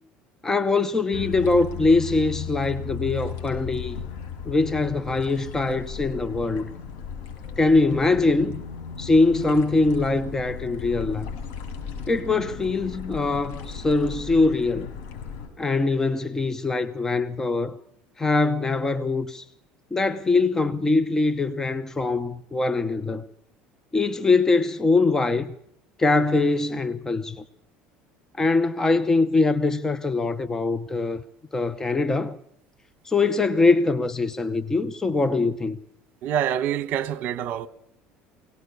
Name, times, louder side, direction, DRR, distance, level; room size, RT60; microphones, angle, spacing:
voice 1, 0.4-4.0 4.4-6.7 7.6-8.6 9.0-11.3 12.1-14.9 15.6-17.8 18.2-19.4 19.9-23.3 23.9-25.5 26.0-27.4 28.4-31.2 31.5-32.4 33.0-35.8, left 3 dB, 15° left, 0.8 m, -22 dB
sound 1, 1.1-15.5, left 6 dB, 75° left, 6.3 m, -36 dB
voice 2, 36.2-37.7, right 10 dB, 55° right, 1.3 m, -26 dB
22.5 x 18.5 x 6.9 m
cardioid pair, 135°, 4 cm